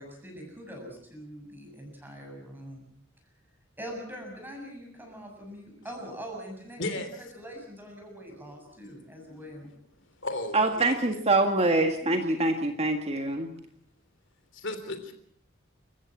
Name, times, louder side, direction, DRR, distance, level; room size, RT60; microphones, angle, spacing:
voice 1, 0.0-2.9 3.8-9.7 12.0-12.5, equal, 10° right, 2 dB, 7.2 m, -43 dB
voice 2, 6.8-7.1 8.6-8.8 9.2-9.6 10.2-11.2 14.5-15.1, left 2 dB, 65° left, 8 dB, 3.1 m, -36 dB
voice 3, 10.5-13.5, right 2 dB, 30° right, 5 dB, 1.8 m, -25 dB
29.5 x 15.0 x 7.3 m, 0.63 s
head